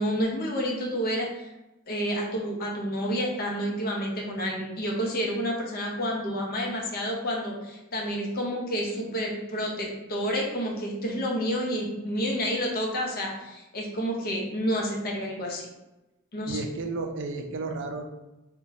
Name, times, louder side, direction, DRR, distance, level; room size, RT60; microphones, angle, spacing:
voice 1, 0.0-1.5 1.9-15.7 16.3-16.6, equal, 45° left, -1 dB, 0.7 m, -29 dB
voice 2, 16.4-18.0, right 3 dB, 60° right, 5 dB, 0.4 m, -32 dB
2.6 x 2.2 x 3.9 m, 1.0 s
head